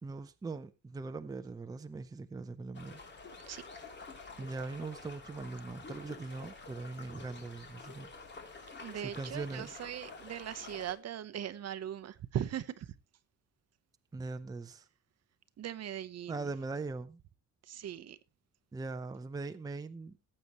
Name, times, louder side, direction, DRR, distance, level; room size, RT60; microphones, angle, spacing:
voice 1, 0.0-3.0 4.0-8.1 9.0-9.7 14.1-14.9 16.3-17.2 18.7-20.2, right 3 dB, 10° right, 0.6 m, -41 dB
sound 1, 2.7-10.9, left 4 dB, 35° left, 3.0 m, -49 dB
voice 2, 8.8-12.9 15.6-16.4 17.7-18.2, right 10 dB, 50° right, 0.8 m, -39 dB
17.5 x 8.1 x 2.9 m
cardioid pair, 175°, 32 cm